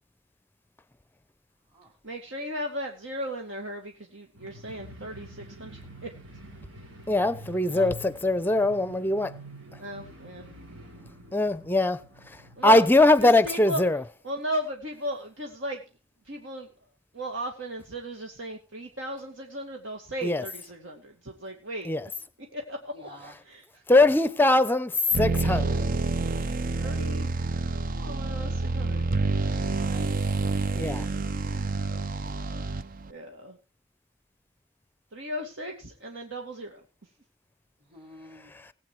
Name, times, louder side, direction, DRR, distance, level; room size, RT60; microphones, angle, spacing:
voice 1, 2.0-6.1 9.8-10.5 12.6-12.8 13.2-13.8 14.2-15.8 16.2-16.7 17.1-21.9 22.5-23.1 23.4-23.8 26.8-27.3 28.0-29.0 31.6-31.7 32.6-32.8 33.1-33.6 35.1-36.8, equal, 65° right, 2.3 m, -36 dB
sound 1, 4.3-13.1, right 1 dB, 90° right, 5.5 m, -47 dB
voice 2, 7.1-9.3 11.3-12.0 12.3-14.0 20.2-20.4 21.9-22.1 23.9-26.0 30.8-31.1 38.5-38.7, left 2 dB, 10° left, 0.7 m, -22 dB
voice 3, 22.9-23.4 26.7-27.1 29.6-30.7 32.4-32.7 37.9-38.5, equal, 25° right, 2.9 m, -48 dB
sound 2, 25.1-33.1, right 3 dB, 45° right, 0.6 m, -28 dB
19.5 x 8.5 x 4.8 m
head